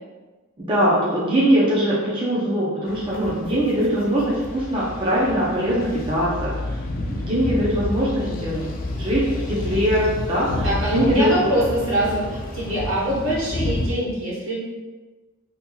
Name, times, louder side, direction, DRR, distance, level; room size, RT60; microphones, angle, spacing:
voice 1, 0.6-6.8 7.0-10.6 10.9-11.3, equal, 25° right, -7 dB, 0.6 m, -22 dB
sound 1, 2.9-13.9, left 1 dB, 45° left, 0.4 m, -30 dB
voice 2, 8.2-8.7 10.6-14.6, right 1 dB, 70° right, -6 dB, 1.3 m, -24 dB
4.1 x 2.9 x 2.3 m, 1.3 s
head